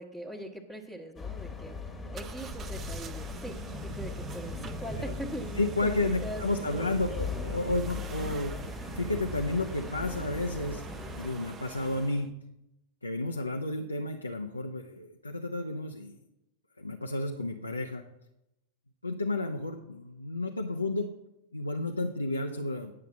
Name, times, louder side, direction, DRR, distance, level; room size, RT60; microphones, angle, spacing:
voice 1, 0.0-1.7 2.1-3.6 3.8-6.9, right 1 dB, 5° left, -3 dB, 1.2 m, -41 dB
sound 1, 1.2-11.3, left 4 dB, 20° left, 1.3 m, -39 dB
sound 2, 2.1-12.3, right 5 dB, 25° right, 0.7 m, -43 dB
voice 2, 5.6-8.6 8.9-10.9 11.2-12.3 13.0-16.2 16.8-18.0 19.0-21.1 21.5-22.9, left 2 dB, 85° left, 3 dB, 0.7 m, -31 dB
9.7 x 6.7 x 7.4 m, 0.89 s
figure-of-eight pair, 90°, 0 cm